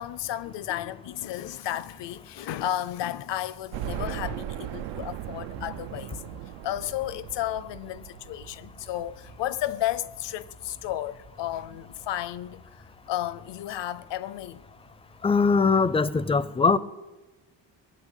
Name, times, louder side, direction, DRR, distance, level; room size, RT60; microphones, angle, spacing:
voice 1, 0.0-6.2 6.6-12.6 13.1-14.6, left 12 dB, 70° left, 0.7 m, -33 dB
sound 1, 3.7-12.6 13.1-13.2 13.6-13.7 14.9-15.0 15.2-15.3, right 14 dB, 85° right, 0.5 m, -39 dB
voice 2, 15.2-16.8, left 4 dB, 15° left, 0.4 m, -21 dB
20.0 x 8.5 x 8.2 m
cardioid pair, 130°, 44 cm